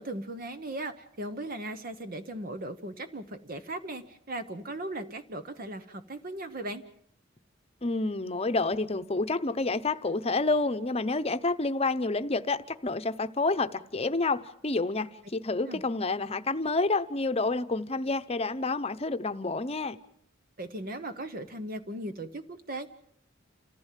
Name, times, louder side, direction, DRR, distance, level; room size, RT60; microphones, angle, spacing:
voice 1, 0.0-6.8 15.7-15.8 20.6-22.9, right 1 dB, 50° right, 1.0 m, -38 dB
voice 2, 7.8-20.0, left 3 dB, 30° left, 0.9 m, -29 dB
29.0 x 15.0 x 7.5 m
head